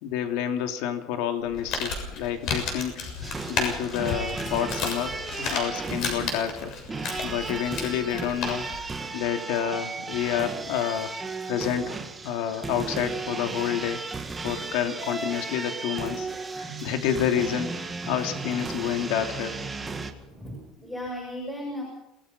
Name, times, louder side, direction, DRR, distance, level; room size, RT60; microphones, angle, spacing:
voice 1, 0.0-2.9 3.2-6.7 7.2-8.6 9.1-11.2 11.5-14.0 14.4-16.3 16.6-19.6, left 9 dB, 70° left, 6 dB, 2.8 m, -29 dB
Crumpling crinkling, 1.4-8.8, left 4 dB, 45° left, 7.0 m, -33 dB
sound 1, 3.2-20.1, right 3 dB, 10° right, 1.8 m, -35 dB
voice 2, 16.6-17.1 20.3-21.8, equal, 10° left, -1 dB, 7.1 m, -36 dB
28.0 x 19.0 x 5.4 m, 0.81 s
cardioid pair, 175°, 0 cm